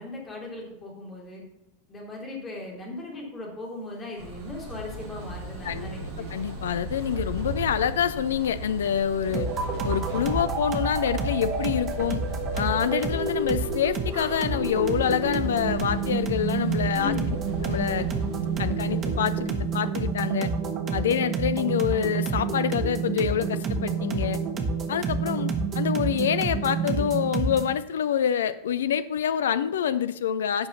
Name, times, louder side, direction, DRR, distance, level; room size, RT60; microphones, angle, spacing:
voice 1, 0.0-1.4 1.9-6.3 16.9-17.3, left 3 dB, 25° left, -2 dB, 3.6 m, -37 dB
sound 1, 4.2-19.5, right 2 dB, 55° right, 3.1 m, -36 dB
voice 2, 6.3-9.5 9.8-12.2 12.6-17.1 17.6-18.1 18.6-20.5 20.9-24.4 24.9-30.7, left 9 dB, 65° left, 15 dB, 0.5 m, -26 dB
sound 2, 9.3-27.8, right 4 dB, 30° right, 1.3 m, -29 dB
11.0 x 5.8 x 5.8 m, 0.90 s
figure-of-eight pair, 85°, 0 cm